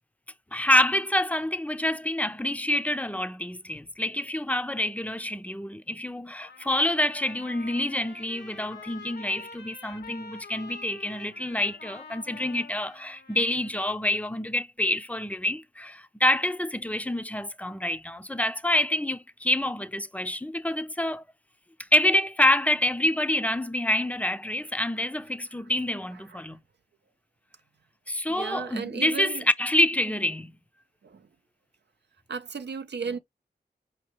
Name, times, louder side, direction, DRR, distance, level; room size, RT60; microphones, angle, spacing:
voice 1, 0.5-21.2 21.9-26.6 28.1-30.5, left 1 dB, 10° left, 0.6 m, -27 dB
Trumpet, 6.4-13.9, left 4 dB, 80° left, 1.2 m, -47 dB
voice 2, 28.3-29.4 31.0-31.3 32.3-33.2, right 5 dB, 80° right, 0.6 m, -35 dB
5.1 x 2.9 x 3.1 m
wide cardioid pair, 60°, 17 cm